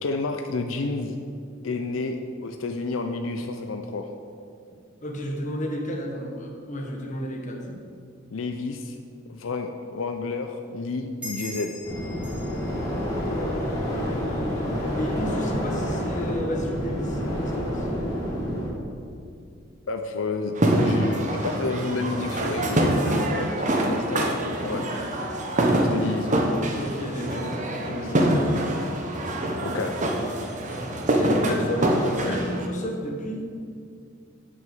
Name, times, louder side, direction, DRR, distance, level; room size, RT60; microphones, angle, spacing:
voice 1, 0.0-1.2 1.6-2.2 2.4-4.1 8.3-9.0 9.3-11.8 19.9-20.5 20.8-24.9 25.7-26.4 27.8-28.1 29.6-30.0, left 3 dB, 85° left, 5 dB, 0.6 m, -30 dB
voice 2, 5.0-7.8 13.1-17.9 26.7-28.6 31.2-33.6, equal, 40° left, 0 dB, 1.5 m, -32 dB
sound 1, 11.2-14.3, equal, 5° right, 2.2 m, -42 dB
sound 2, 11.8-18.7, equal, 20° left, 2.5 m, -28 dB
sound 3, 20.6-32.7, right 1 dB, 40° right, 1.0 m, -25 dB
7.9 x 6.4 x 7.2 m, 2.3 s
head